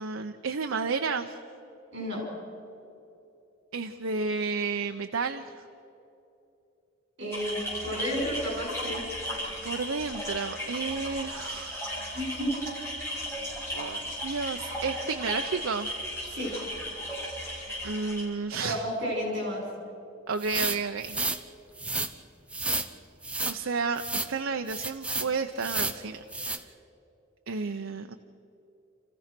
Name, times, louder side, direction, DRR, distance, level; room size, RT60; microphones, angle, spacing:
voice 1, 0.0-1.3 3.7-5.5 9.6-11.9 13.1-13.3 13.7-15.9 17.8-18.8 20.3-21.2 23.5-26.2 27.5-28.1, right 4 dB, 85° right, 6 dB, 0.7 m, -32 dB
voice 2, 7.2-9.0 12.1-12.6 16.3-16.5 18.6-19.6, equal, 60° right, -1 dB, 5.8 m, -31 dB
sound 1, 7.3-18.2, equal, 15° left, 6.8 m, -36 dB
sound 2, 20.4-21.4 21.8-22.1 22.5-22.9 23.2-23.6 24.0-24.3 24.7-25.3 25.6-26.0 26.3-26.6, right 2 dB, 5° right, 0.7 m, -31 dB
28.5 x 15.0 x 6.0 m, 2.9 s
head